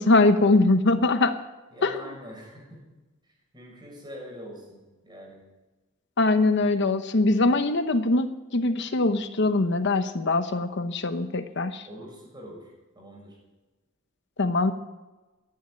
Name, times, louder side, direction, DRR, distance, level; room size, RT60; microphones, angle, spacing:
voice 1, 0.0-1.4 1.8-2.0 6.2-11.8 14.4-14.7, left 2 dB, 60° left, 9 dB, 0.9 m, -22 dB
voice 2, 1.7-2.8 3.5-5.4 11.9-13.4, equal, 20° right, -2 dB, 6.8 m, -44 dB
14.0 x 10.5 x 9.2 m, 1.1 s
head